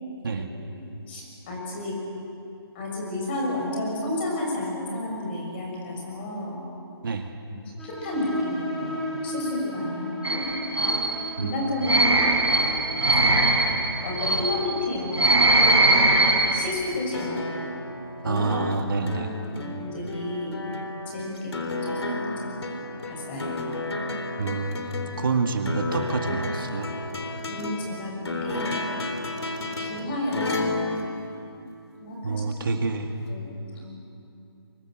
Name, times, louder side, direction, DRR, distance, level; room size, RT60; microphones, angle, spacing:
voice 1, 1.1-2.0 2.7-6.6 7.6-10.5 11.4-13.5 14.0-15.8 16.4-17.7 18.2-18.5 19.4-20.6 21.1-22.6 23.0-23.5 27.5-28.8 29.8-30.6 32.0-32.5 33.3-34.0, left 1 dB, 25° left, -1 dB, 6.6 m, -32 dB
sound 1, 7.8-15.1, left 1 dB, 5° left, 2.2 m, -37 dB
sound 2, 10.2-16.7, right 2 dB, 90° right, 4.9 m, -21 dB
sound 3, 17.1-32.0 33.3-33.4, left 2 dB, 85° left, 3.6 m, -32 dB
voice 2, 18.2-19.3 24.4-26.9 32.2-33.2, right 4 dB, 55° right, 4 dB, 2.2 m, -27 dB
28.0 x 24.0 x 7.7 m, 2.7 s
hypercardioid pair, 165°, 14 cm